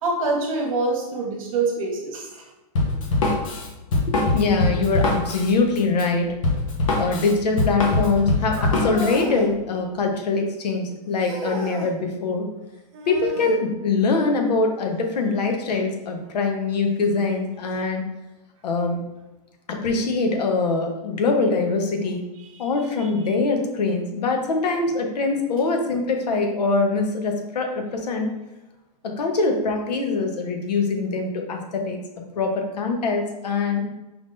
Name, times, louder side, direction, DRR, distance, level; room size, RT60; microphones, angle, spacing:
voice 1, 0.0-2.4 22.5-22.7, right 3 dB, 55° right, 0 dB, 1.3 m, -25 dB
Drum kit, 2.8-9.2, left 2 dB, 55° left, 1.1 m, -23 dB
voice 2, 4.1-6.4 7.0-12.5 13.1-18.0 18.6-19.0 19.7-22.2 22.6-28.3 29.0-32.0 32.4-33.9, left 3 dB, 80° left, 3 dB, 1.1 m, -23 dB
sound 1, 8.5-9.5 11.2-11.9 12.9-13.6 15.7-15.8 16.6-16.7 17.7-17.8, right 1 dB, 35° right, 1.4 m, -33 dB
5.0 x 3.7 x 2.6 m, 1.0 s
supercardioid pair, 180°, 21 cm